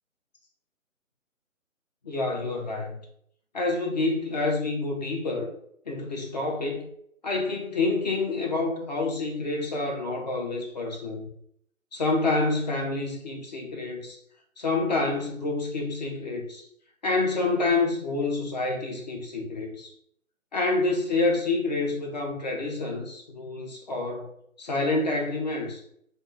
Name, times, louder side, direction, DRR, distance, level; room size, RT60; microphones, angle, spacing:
voice 1, 2.0-3.0 3.5-5.5 5.9-6.9 7.2-11.3 11.9-14.2 14.6-16.6 17.0-19.9 20.5-24.3 24.6-25.8, left 3 dB, 30° left, 0 dB, 0.6 m, -28 dB
3.6 x 2.1 x 3.7 m, 0.68 s
figure-of-eight pair, 145°, 42 cm